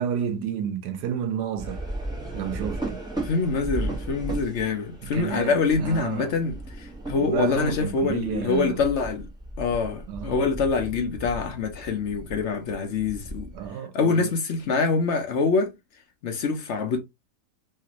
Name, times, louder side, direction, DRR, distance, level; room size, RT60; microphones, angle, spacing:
voice 1, 0.0-1.8 2.3-3.0 5.1-6.3 7.2-8.8 10.1-10.5 13.5-14.3, right 8 dB, 90° right, 1.2 m, -30 dB
sound 1, 1.6-13.7, right 1 dB, 5° right, 0.8 m, -36 dB
voice 2, 3.2-9.3 9.6-13.5 13.9-15.7 16.2-17.0, left 4 dB, 65° left, 0.7 m, -25 dB
3.2 x 2.5 x 2.8 m
omnidirectional pair, 1.8 m